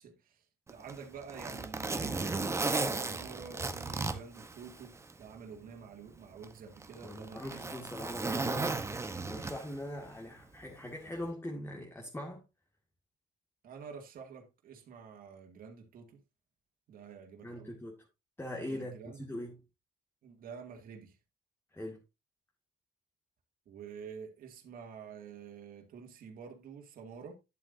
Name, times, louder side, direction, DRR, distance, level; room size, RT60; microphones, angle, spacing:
voice 1, 0.0-7.7 13.6-16.2 16.9-17.8 18.7-19.2 20.2-21.2 23.7-27.3, right 6 dB, 55° right, 2.2 m, -49 dB
Zipper (clothing), 0.7-5.2 5.6-5.7 6.4-9.9 11.1-11.3, right 3 dB, 15° right, 0.9 m, -35 dB
voice 2, 7.0-8.8 9.3-12.4 17.4-18.1 18.4-19.5 21.7-22.0, left 1 dB, 15° left, 2.1 m, -41 dB
11.0 x 7.8 x 2.7 m
cardioid pair, 110°, 17 cm